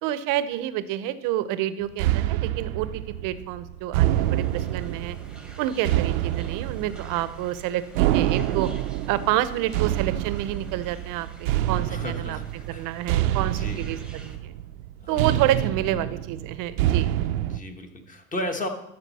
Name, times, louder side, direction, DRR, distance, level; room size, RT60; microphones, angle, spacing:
voice 1, 0.0-5.2 5.6-8.7 9.1-11.3 11.7-12.4 12.7-14.5 15.1-17.1, right 13 dB, 50° right, 14 dB, 0.7 m, -28 dB
sound 1, 2.0-17.6, right 13 dB, 80° right, 0.7 m, -27 dB
sound 2, 4.1-14.4, right 2 dB, ahead, 1.1 m, -50 dB
voice 2, 11.7-12.4 12.7-12.9 13.4-14.0 15.0-15.4 17.4-18.7, left 1 dB, 20° left, 5 dB, 1.1 m, -34 dB
12.5 x 6.4 x 4.2 m, 0.81 s
supercardioid pair, 125°, 42 cm